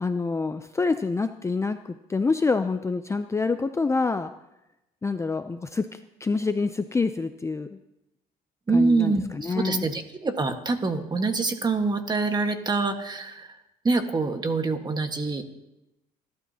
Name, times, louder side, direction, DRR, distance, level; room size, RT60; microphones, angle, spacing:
voice 1, 0.0-4.3 5.0-7.8 8.7-9.8, left 4 dB, 15° left, 9 dB, 0.5 m, -27 dB
voice 2, 8.7-13.6 13.8-15.4, right 3 dB, 25° right, 6 dB, 1.5 m, -25 dB
27.5 x 12.0 x 2.9 m, 0.92 s
cardioid pair, 110°, 17 cm